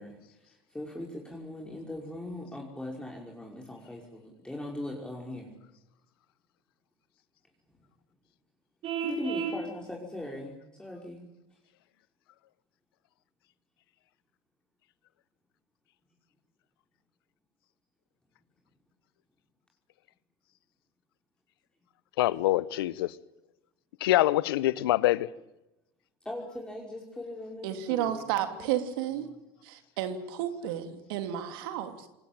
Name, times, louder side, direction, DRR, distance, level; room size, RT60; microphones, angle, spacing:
voice 1, 0.0-5.5 9.0-11.3 26.2-28.8 29.2-29.4, left 1 dB, 5° left, 5.5 m, -40 dB
Vehicle horn car horn honking, 8.8-9.6, right 6 dB, 55° right, 7.2 m, -32 dB
voice 2, 22.2-23.1 24.0-25.3, left 15 dB, 85° left, 1.0 m, -25 dB
voice 3, 27.6-29.3 29.6-32.1, right 11 dB, 75° right, 3.0 m, -32 dB
26.5 x 20.5 x 9.0 m
hypercardioid pair, 85°, 12 cm